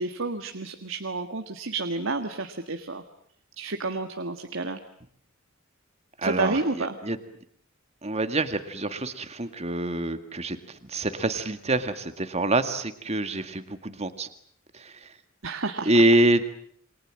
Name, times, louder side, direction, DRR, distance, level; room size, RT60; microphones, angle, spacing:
voice 1, 0.0-3.0 3.6-4.8 6.2-7.0 15.4-15.9, right 3 dB, 70° right, 7 dB, 1.7 m, -30 dB
voice 2, 6.2-7.2 8.0-10.6 10.9-14.3 14.8-14.9 15.9-16.4, right 1 dB, 30° right, 10 dB, 2.0 m, -25 dB
28.5 x 24.0 x 7.6 m, 0.63 s
head